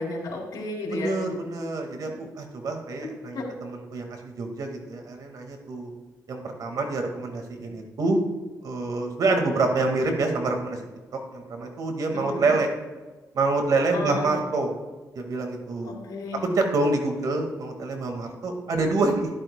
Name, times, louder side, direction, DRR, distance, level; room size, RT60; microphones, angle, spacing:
voice 1, 0.0-1.1 3.3-3.4 12.1-12.5 13.9-14.3 15.8-16.5, left 2 dB, 90° left, -1 dB, 3.0 m, -32 dB
voice 2, 0.9-5.9 6.3-8.2 8.6-10.8 11.3-12.7 13.3-14.8 15.2-15.9 16.6-19.3, right 3 dB, 65° right, 4 dB, 1.8 m, -26 dB
14.0 x 11.0 x 2.2 m, 1.3 s
cardioid pair, 100°, 7 cm